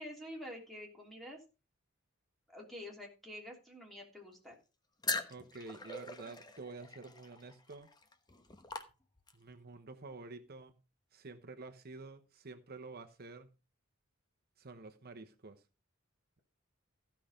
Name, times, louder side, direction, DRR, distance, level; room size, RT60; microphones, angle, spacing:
voice 1, 0.0-1.4 2.5-4.6, left 1 dB, ahead, 3.1 m, -48 dB
sound 1, 5.0-9.5, left 3 dB, 20° left, 1.1 m, -42 dB
voice 2, 5.3-7.9 9.3-10.8 11.1-13.5 14.6-15.6, right 3 dB, 45° right, 1.0 m, -49 dB
15.5 x 5.8 x 5.1 m
head